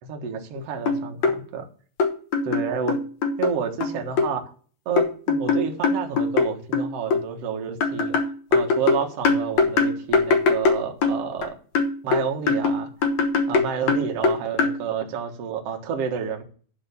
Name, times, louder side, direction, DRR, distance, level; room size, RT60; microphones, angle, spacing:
voice 1, 0.0-1.7 2.4-3.0 3.4-4.4 4.9-8.2 8.5-11.6 12.0-12.9 13.5-16.4, right 7 dB, 55° right, 3 dB, 1.8 m, -29 dB
sound 1, 0.6-0.7 0.9-1.4 2.0-3.5 3.8-4.3 5.0-7.2 7.8-11.5 11.8-14.8, left 4 dB, 60° left, 2.0 m, -21 dB
11.5 x 4.4 x 6.8 m, 0.41 s
omnidirectional pair, 4.7 m